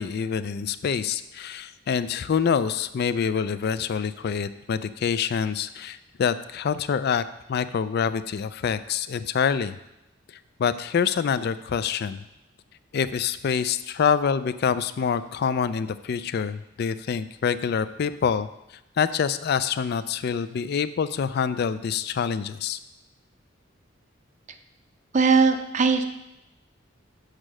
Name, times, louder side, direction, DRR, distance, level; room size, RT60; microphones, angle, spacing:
voice 1, 0.0-7.2 7.5-9.8 10.6-12.2 12.9-18.5 19.0-22.8, left 7 dB, 55° left, 14 dB, 0.4 m, -26 dB
voice 2, 25.1-26.0, right 5 dB, 35° right, 7 dB, 0.5 m, -19 dB
6.6 x 6.3 x 6.2 m, 0.90 s
head